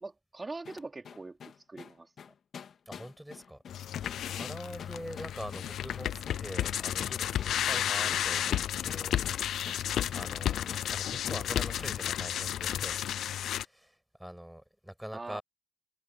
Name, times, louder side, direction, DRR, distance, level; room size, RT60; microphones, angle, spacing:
voice 1, 0.0-2.1 15.1-15.4, right 3 dB, 30° right, 2.7 m, -42 dB
sound 1, 0.6-9.9 10.1-10.3 10.7-10.9 11.2-11.4 11.8-12.0, left 7 dB, 65° left, 3.3 m, -47 dB
voice 2, 2.9-3.6 4.4-9.9 10.1-13.0 13.6-15.4, equal, 5° right, 7.0 m, -44 dB
sound 2, 3.7-13.6, left 11 dB, 85° left, 0.5 m, -32 dB
cardioid pair, 80°, 0 cm